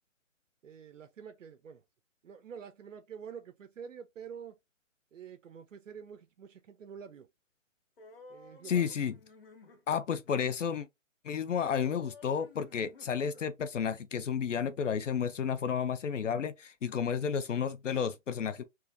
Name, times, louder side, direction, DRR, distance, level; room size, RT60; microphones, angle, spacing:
voice 1, 0.6-1.8 2.2-4.6 5.1-7.3 8.3-8.9, right 7 dB, 75° right, 0.6 m, -47 dB
sound 1, 8.0-9.8 11.6-13.5, left 4 dB, 45° left, 1.1 m, -54 dB
voice 2, 8.7-9.1 9.9-10.9 11.2-18.6, left 7 dB, 70° left, 0.6 m, -32 dB
4.5 x 2.5 x 2.5 m
hypercardioid pair, 175°, 39 cm